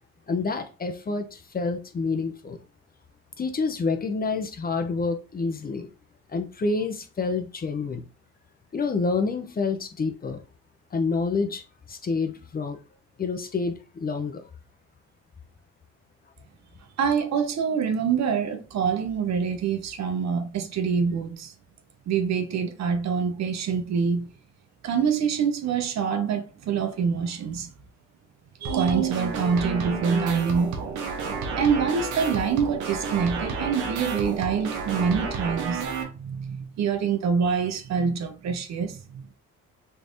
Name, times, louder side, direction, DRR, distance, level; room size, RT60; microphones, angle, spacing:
voice 1, 0.3-2.6 3.4-5.9 6.3-8.1 8.7-10.4 10.9-12.8 13.2-14.4, left 4 dB, 30° left, 0.6 m, -28 dB
voice 2, 17.0-21.5 22.1-24.3 24.8-27.7 28.6-30.8 31.6-39.3, right 6 dB, 60° right, 0.8 m, -26 dB
sound 1, 28.6-36.0, right 5 dB, 90° right, 0.9 m, -30 dB
3.3 x 3.2 x 2.6 m
cardioid pair, 90°, 30 cm